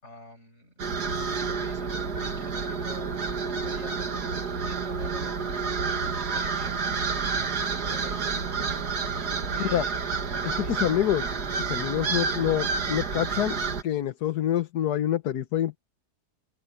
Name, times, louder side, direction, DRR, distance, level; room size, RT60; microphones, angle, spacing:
voice 1, 0.0-0.8 1.1-5.5 6.0-7.0 7.5-8.5 9.5-10.0 10.4-10.9, left 3 dB, 40° left, 7.8 m, -49 dB
sound 1, 0.8-13.8, right 5 dB, 75° right, 2.5 m, -29 dB
voice 2, 10.6-11.3 11.7-13.6 13.8-15.8, left 11 dB, 70° left, 1.5 m, -26 dB
omnidirectional pair, 1.8 m